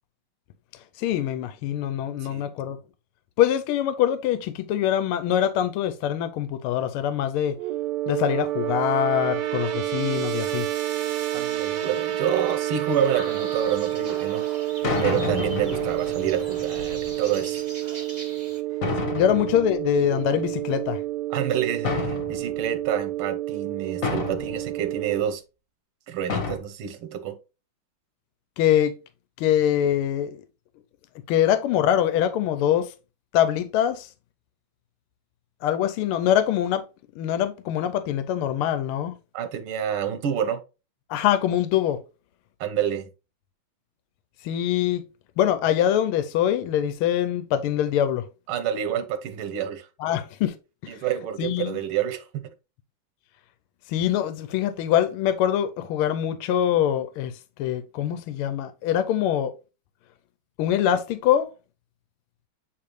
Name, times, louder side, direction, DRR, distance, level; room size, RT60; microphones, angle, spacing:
voice 1, 1.0-2.8 3.4-7.6 8.1-10.7 19.1-21.0 28.6-29.0 29.4-30.4 31.3-32.9 33.3-34.1 35.6-36.8 37.2-39.2 41.1-42.0 44.4-45.0 45.4-48.3 50.0-50.6 50.8-50.9 51.4-51.8 53.9-59.5 60.6-61.5, left 10 dB, 85° left, 1.5 m, -24 dB
sound 1, 7.5-25.2, right 14 dB, 65° right, 1.2 m, -29 dB
sound 2, 10.9-18.6, right 2 dB, 30° right, 0.9 m, -42 dB
voice 2, 11.3-14.5 15.0-17.7 21.3-25.4 26.1-27.4 39.3-40.6 42.6-43.1 48.5-49.9 50.9-52.5, right 9 dB, 85° right, 1.7 m, -28 dB
sound 3, 13.6-13.9 14.8-17.5 18.8-20.5 21.8-22.8 24.0-24.7 26.3-26.6, left 5 dB, 45° left, 1.3 m, -30 dB
7.7 x 4.0 x 3.1 m
omnidirectional pair, 2.4 m